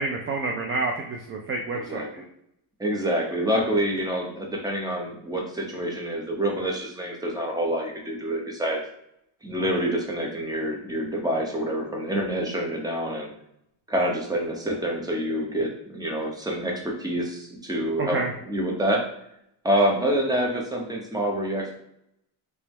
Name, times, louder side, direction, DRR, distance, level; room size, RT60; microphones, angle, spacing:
voice 1, 0.0-2.0 18.0-18.3, right 3 dB, 30° right, 2 dB, 0.4 m, -28 dB
voice 2, 1.7-2.1 2.8-8.8 9.4-13.3 13.9-19.0 19.6-21.7, equal, 10° right, 0 dB, 0.8 m, -27 dB
3.3 x 3.3 x 3.1 m, 0.76 s
cardioid pair, 110°, 49 cm